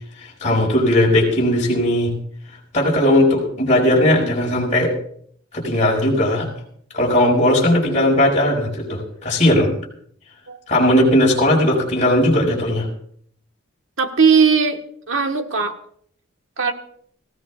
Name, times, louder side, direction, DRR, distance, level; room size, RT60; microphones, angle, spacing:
voice 1, 0.2-2.1 2.7-4.9 5.5-6.5 6.9-9.7 10.7-12.9, left 1 dB, 35° left, -4 dB, 5.5 m, -17 dB
voice 2, 14.0-14.8 15.1-15.8 16.6-16.7, right 5 dB, 75° right, 5 dB, 1.5 m, -17 dB
26.0 x 16.5 x 2.4 m, 0.62 s
head